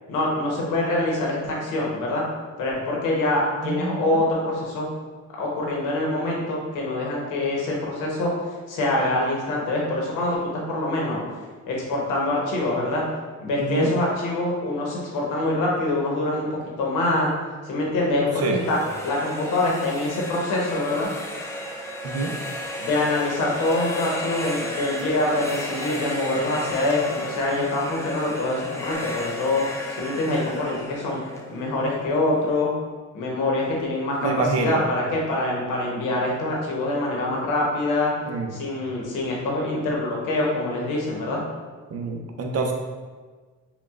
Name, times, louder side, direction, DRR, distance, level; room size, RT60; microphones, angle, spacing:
voice 1, 0.1-2.2 2.6-4.9 5.4-8.3 8.7-11.2 11.7-13.0 13.4-17.3 17.6-18.8 19.0-21.1 22.8-29.6 29.9-31.2 31.5-32.7 33.1-38.1 38.5-41.4, left 2 dB, 90° left, -3 dB, 1.0 m, -25 dB
voice 2, 3.6-4.1 13.6-13.9 18.4-18.6 22.0-22.3 34.2-34.8 38.3-38.5 41.9-42.7, right 4 dB, 55° right, 2 dB, 0.7 m, -26 dB
sound 1, 18.4-32.2, left 1 dB, 10° left, 0.5 m, -34 dB
5.8 x 2.3 x 2.4 m, 1.4 s
cardioid pair, 90°, 30 cm